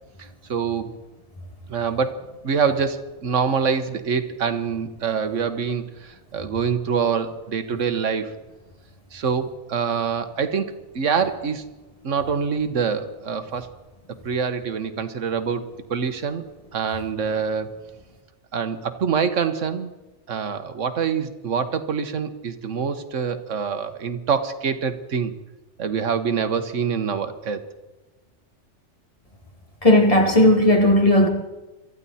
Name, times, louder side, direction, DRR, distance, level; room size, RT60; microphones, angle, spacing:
voice 1, 0.2-0.9 1.7-8.3 9.1-11.6 12.0-13.7 14.2-15.6 15.9-16.4 16.7-17.8 18.5-19.9 20.3-25.3 25.8-27.6, right 6 dB, 80° right, 10 dB, 1.5 m, -25 dB
voice 2, 29.8-31.3, left 1 dB, 30° left, 2 dB, 2.4 m, -15 dB
24.0 x 14.0 x 4.2 m, 1.1 s
omnidirectional pair, 1.3 m